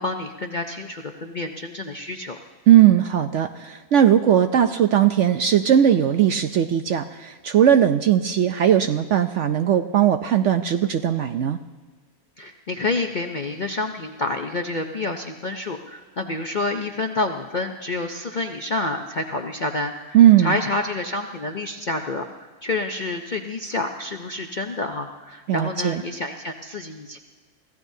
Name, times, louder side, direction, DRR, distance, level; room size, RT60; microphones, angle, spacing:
voice 1, 0.0-2.4 12.4-22.3 22.6-27.2, left 2 dB, 50° left, 4 dB, 0.6 m, -28 dB
voice 2, 2.7-11.6 20.1-20.6 25.5-26.0, right 10 dB, 65° right, 8 dB, 0.7 m, -18 dB
24.5 x 15.5 x 2.7 m, 1.4 s
omnidirectional pair, 1.6 m